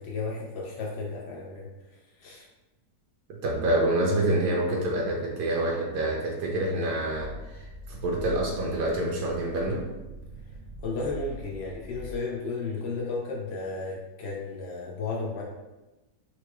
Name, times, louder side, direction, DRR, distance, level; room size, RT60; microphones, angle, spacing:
voice 1, 0.0-1.7 2.2-2.5 10.8-15.4, left 3 dB, 90° left, -2 dB, 0.5 m, -33 dB
voice 2, 3.4-9.9, right 1 dB, 80° right, -2 dB, 1.2 m, -27 dB
sound 1, 7.1-12.2, equal, 65° right, 1.0 m, -42 dB
4.4 x 2.2 x 2.9 m, 1.0 s
omnidirectional pair, 1.8 m